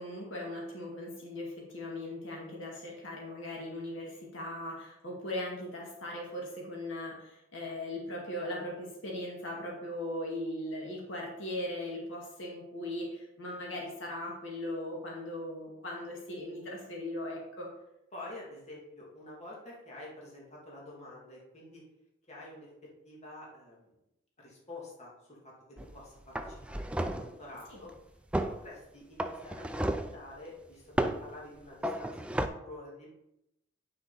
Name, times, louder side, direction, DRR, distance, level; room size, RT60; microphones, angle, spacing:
voice 1, 0.0-17.7 27.7-27.8, left 1 dB, 65° left, -2 dB, 2.0 m, -39 dB
voice 2, 18.1-21.8 22.3-23.9 24.4-25.5 25.9-27.9 28.5-33.1, left 2 dB, 35° left, -4 dB, 2.5 m, -48 dB
sound 1, 25.8-26.0 26.4-27.3 28.3-28.6 29.2-30.2 31.0-31.3 31.8-32.5, right 1 dB, 5° right, 0.4 m, -32 dB
9.1 x 6.0 x 4.1 m, 0.85 s
head